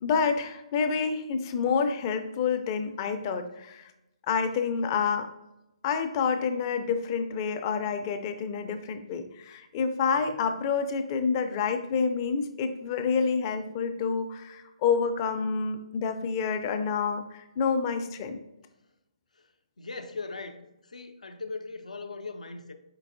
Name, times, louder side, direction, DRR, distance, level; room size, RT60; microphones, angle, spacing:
voice 1, 0.0-3.9 4.3-5.3 5.8-18.4, left 5 dB, 35° left, 0.4 m, -28 dB
voice 2, 10.1-10.5 19.4-19.5 19.8-22.7, left 3 dB, 85° left, 0.5 m, -40 dB
4.5 x 4.0 x 2.6 m
hypercardioid pair, 140°, 4 cm